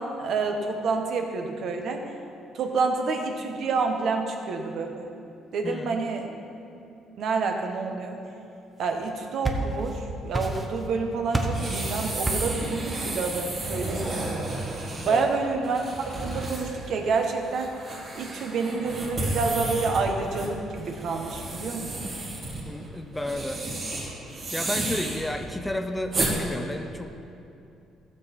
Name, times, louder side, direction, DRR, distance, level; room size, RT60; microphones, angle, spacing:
voice 1, 0.0-2.0 2.5-5.0 5.5-6.3 7.2-8.2 8.8-14.5 15.0-17.7 18.1-22.1, right 4 dB, 55° right, 4 dB, 1.1 m, -28 dB
voice 2, 5.6-6.1 15.0-15.3 22.6-23.6 24.5-27.1, left 1 dB, 10° left, 6 dB, 0.4 m, -32 dB
sound 1, 9.0-10.0 10.3-10.9 11.3-11.7 12.2-12.6, right 2 dB, 10° right, 0.9 m, -29 dB
sound 2, 11.5-26.3, right 2 dB, 35° right, 2.3 m, -33 dB
15.5 x 7.2 x 4.4 m, 2.7 s
cardioid pair, 145°, 0 cm